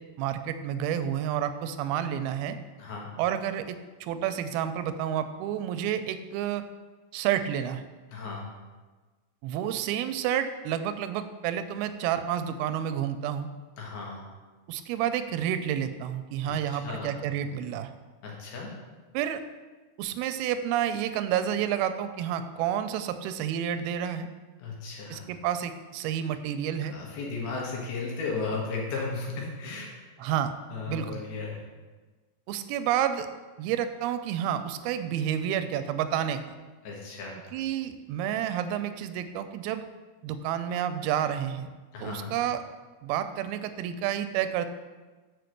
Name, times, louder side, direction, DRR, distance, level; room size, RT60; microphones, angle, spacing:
voice 1, 0.2-2.6 3.2-6.6 7.1-7.8 9.4-13.5 14.7-17.9 19.1-19.4 20.0-24.3 25.1-26.9 30.2-30.5 30.9-31.2 32.5-33.3 33.6-36.6 37.5-39.9 40.2-41.7 42.0-42.6 43.0-44.7, right 10 dB, 85° right, 10 dB, 2.4 m, -30 dB
voice 2, 2.8-3.1 8.1-8.5 13.8-14.3 16.4-17.2 18.2-18.7 24.6-25.2 26.9-30.0 30.7-31.6 36.8-37.4 41.9-42.4, left 4 dB, 85° left, -2 dB, 3.5 m, -35 dB
6.8 x 4.7 x 6.5 m, 1.3 s
omnidirectional pair, 4.3 m